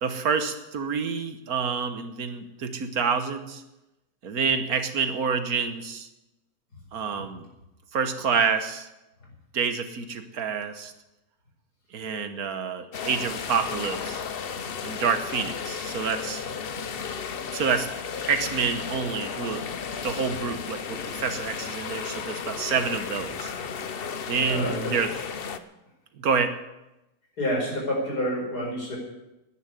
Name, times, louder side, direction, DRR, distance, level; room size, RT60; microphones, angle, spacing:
voice 1, 0.0-3.6 4.2-6.1 6.9-7.5 7.9-8.9 9.5-10.9 11.9-14.2 14.8-16.4 17.5-17.9 18.3-19.6 20.0-23.5 24.3-25.1 26.2-26.6, right 6 dB, 65° right, 9 dB, 1.6 m, -28 dB
sound 1, 12.9-25.6, left 6 dB, 50° left, 0.8 m, -34 dB
voice 2, 24.5-24.9 27.4-29.0, equal, 75° left, -1 dB, 5.5 m, -28 dB
10.5 x 10.5 x 9.7 m, 0.96 s
omnidirectional pair, 1.7 m